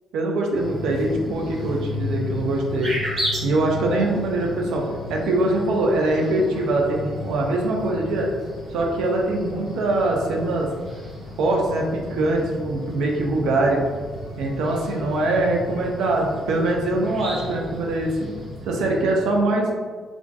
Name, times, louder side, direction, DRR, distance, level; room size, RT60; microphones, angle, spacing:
voice 1, 0.1-3.0 3.4-4.8 5.1-8.3 8.7-10.7 11.4-13.8 14.4-18.3 18.6-19.7, right 2 dB, 85° right, 0 dB, 0.4 m, -23 dB
sound 1, 0.5-19.4, left 1 dB, 45° right, 1.4 m, -34 dB
2.5 x 2.5 x 2.2 m, 1.5 s
cardioid pair, 90°, 0 cm